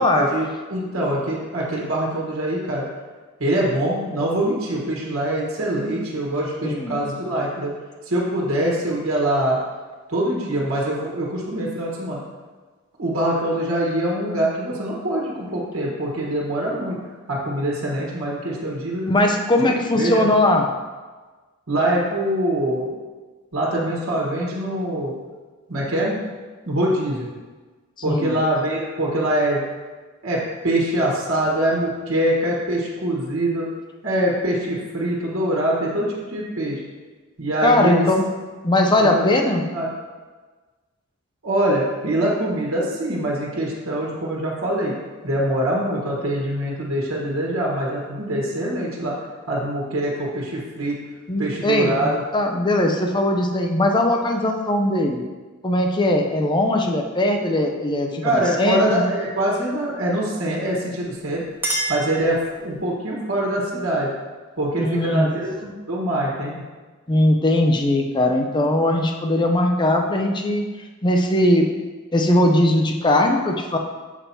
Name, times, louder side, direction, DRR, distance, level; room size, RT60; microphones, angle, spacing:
voice 1, 0.1-2.8 3.4-7.7 8.1-9.6 10.1-12.2 13.0-17.0 17.3-19.1 20.0-20.3 21.7-22.9 23.5-25.2 25.7-26.2 26.6-27.3 28.0-29.6 30.2-33.7 34.0-36.8 37.4-38.1 39.0-39.3 39.7-39.9 41.4-44.9 45.2-49.1 49.5-51.0 51.4-52.2 58.2-61.4 61.9-64.1 64.6-66.6, right 1 dB, 70° right, -3 dB, 1.3 m, -24 dB
voice 2, 6.6-7.0 19.1-20.7 28.1-28.3 37.6-38.2 38.6-39.6 51.3-55.2 55.6-59.0 64.8-65.3 67.1-70.6 71.0-71.7 72.1-73.8, left 1 dB, 20° left, 3 dB, 0.5 m, -20 dB
Chink clink, 61.0-62.9, right 1 dB, 10° right, 0.9 m, -30 dB
6.9 x 2.9 x 5.5 m, 1.3 s
head